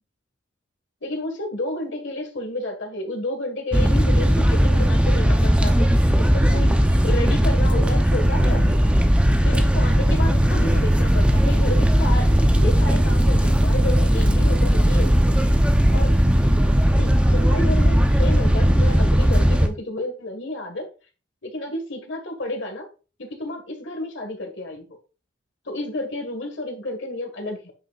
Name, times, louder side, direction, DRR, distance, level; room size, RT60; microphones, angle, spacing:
voice 1, 1.0-5.9 6.2-6.8 7.0-8.9 9.4-15.2 15.9-16.1 17.0-20.9 21.4-22.9 23.3-25.0 25.7-27.7, left 1 dB, 65° left, 1.7 m, -31 dB
sound 1, 3.7-19.7, equal, 5° right, 0.7 m, -17 dB
9.3 x 5.5 x 2.5 m
head